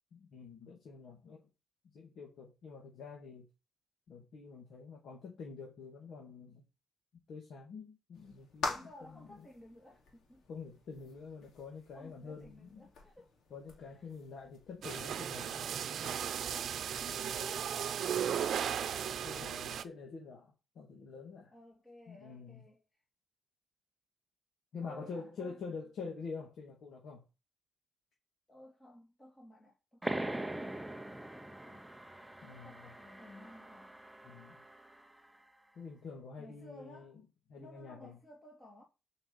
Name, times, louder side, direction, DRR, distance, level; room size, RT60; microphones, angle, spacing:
voice 1, 0.1-1.5 1.9-3.5 4.1-6.6 7.3-9.5 10.5-12.9 13.5-15.7 17.1-17.8 18.9-21.5 22.1-22.6 24.7-27.2 32.4-32.9 34.2-34.6 35.7-37.1 37.5-38.2, left 5 dB, 60° left, 2.6 m, -47 dB
sound 1, 8.1-18.2, left 3 dB, 90° left, 3.4 m, -47 dB
voice 2, 8.6-10.4 11.9-13.3 13.9-14.0 16.5-17.1 21.5-22.8 24.8-25.6 28.5-31.9 32.5-33.9 36.4-37.1 37.6-38.8, left 1 dB, 15° left, 2.2 m, -55 dB
sound 2, 14.8-19.8, right 9 dB, 60° right, 0.8 m, -36 dB
sound 3, 30.0-35.3, right 1 dB, 5° right, 0.7 m, -42 dB
8.1 x 5.7 x 7.2 m
cardioid pair, 155°, 0 cm